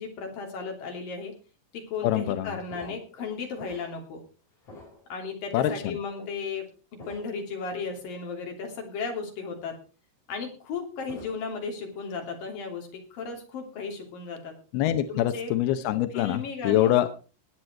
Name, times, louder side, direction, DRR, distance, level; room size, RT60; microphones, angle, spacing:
voice 1, 0.0-1.3 1.7-4.2 5.1-6.6 7.1-9.8 10.3-14.5 15.1-15.5 16.1-17.1, left 5 dB, 50° left, 2 dB, 4.4 m, -35 dB
voice 2, 2.0-2.5 2.8-2.9 5.5-6.0 14.7-17.1, left 12 dB, 75° left, 10 dB, 2.3 m, -25 dB
sound 1, 2.7-4.2 4.6-5.3 6.2-6.3 7.0-7.5 7.9-8.0 10.7-11.6 12.0-12.4, left 1 dB, 35° left, 5.1 m, -48 dB
20.0 x 8.1 x 4.4 m, 0.35 s
omnidirectional pair, 5.4 m